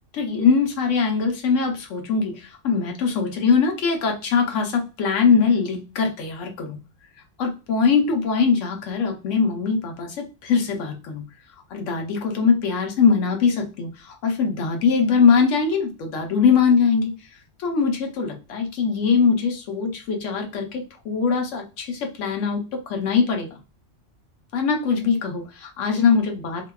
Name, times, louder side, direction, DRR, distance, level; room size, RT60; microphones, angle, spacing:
voice 1, 0.1-6.8 7.4-11.2 11.7-17.1 17.6-23.5 24.5-26.7, left 5 dB, 80° left, 3 dB, 1.0 m, -22 dB
2.6 x 2.2 x 2.2 m, 0.30 s
omnidirectional pair, 1.3 m